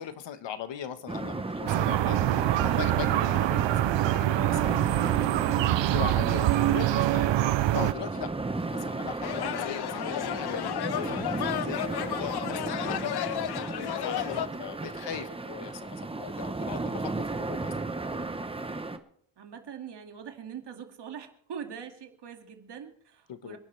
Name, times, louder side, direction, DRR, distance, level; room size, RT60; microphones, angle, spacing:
voice 1, 0.0-4.9 5.3-7.4 7.7-13.5 13.8-17.9 23.3-23.6, left 9 dB, 80° left, 11 dB, 1.3 m, -40 dB
sound 1, 1.1-19.0, right 3 dB, 15° right, 0.9 m, -35 dB
sound 2, 1.7-7.9, right 14 dB, 85° right, 0.6 m, -25 dB
sound 3, 9.2-14.5, left 11 dB, 65° left, 0.7 m, -32 dB
voice 2, 14.4-15.1 19.4-23.6, right 7 dB, 70° right, 4 dB, 2.3 m, -44 dB
27.0 x 11.5 x 3.3 m, 0.65 s
wide cardioid pair, 140°, 43 cm